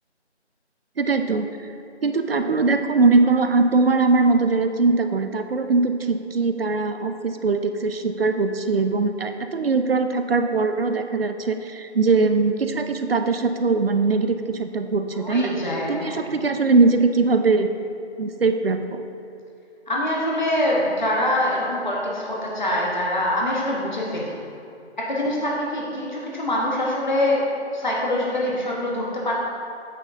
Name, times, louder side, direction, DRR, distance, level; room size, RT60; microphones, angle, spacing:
voice 1, 1.0-1.5 2.0-15.5 15.9-17.7 18.2-19.0, right 3 dB, 60° right, 8 dB, 0.4 m, -21 dB
voice 2, 15.1-16.3 19.9-24.4 25.0-27.4 27.7-29.3, left 1 dB, 40° left, -4 dB, 1.2 m, -24 dB
7.6 x 6.2 x 2.6 m, 2.7 s
figure-of-eight pair, 165°, 35 cm